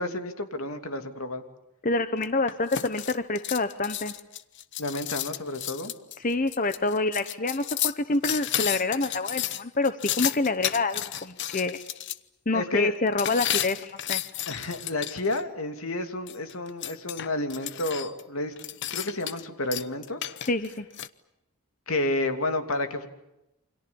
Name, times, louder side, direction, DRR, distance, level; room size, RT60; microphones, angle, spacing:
voice 1, 0.0-1.4 4.8-5.9 12.5-12.9 14.5-18.5 18.9-20.2 21.9-23.1, left 2 dB, 70° left, 7 dB, 2.9 m, -30 dB
voice 2, 1.8-4.1 6.2-11.8 12.5-14.2 20.4-20.9, left 3 dB, 35° left, 10 dB, 1.0 m, -27 dB
sound 1, 2.2-12.2 13.2-15.4 16.3-18.2 18.6-19.5 19.7-21.1, left 12 dB, 55° left, 0.9 m, -32 dB
29.0 x 26.0 x 7.2 m, 0.89 s
head